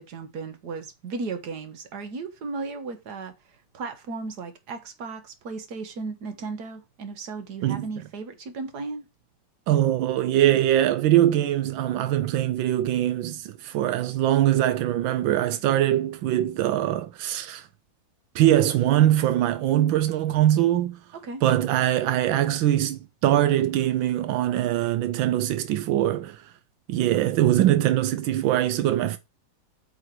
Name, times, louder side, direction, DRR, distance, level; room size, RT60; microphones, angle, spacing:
voice 1, 0.0-9.1 21.2-21.4, right 4 dB, 60° right, 1.9 m, -35 dB
voice 2, 9.7-17.6 18.3-21.0 21.4-26.4 26.9-29.2, right 12 dB, 90° right, 1.4 m, -22 dB
8.4 x 4.9 x 4.8 m
omnidirectional pair, 2.1 m